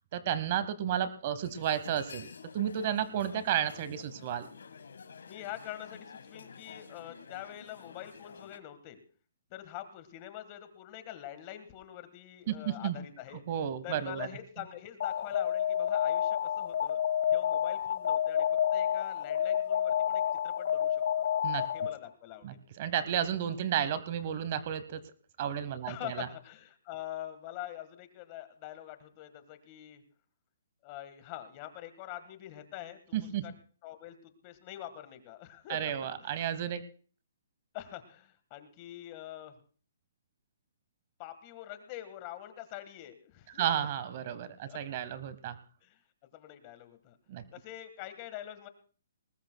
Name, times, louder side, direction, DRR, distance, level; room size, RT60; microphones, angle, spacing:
voice 1, 0.1-4.5 12.5-12.9 13.5-14.3 21.4-21.7 22.4-25.0 25.4-26.3 33.1-33.5 35.7-36.9 43.6-45.6 47.3-47.4, right 10 dB, 35° right, 14 dB, 0.9 m, -32 dB
sound 1, 1.4-8.6, left 5 dB, 85° left, 1.5 m, -50 dB
voice 2, 5.3-9.0 9.5-13.4 13.8-17.0 17.3-21.0 21.7-22.6 25.9-30.0 30.8-33.5 33.8-36.4 37.7-39.6 41.2-43.7 44.7-44.8 45.8-46.0 46.3-47.2 47.5-48.7, left 13 dB, 25° left, 11 dB, 1.5 m, -45 dB
Alarm, 15.0-22.1, left 9 dB, 60° left, 0.7 m, -29 dB
20.0 x 19.5 x 2.2 m, 0.40 s
hypercardioid pair, 165°, 0 cm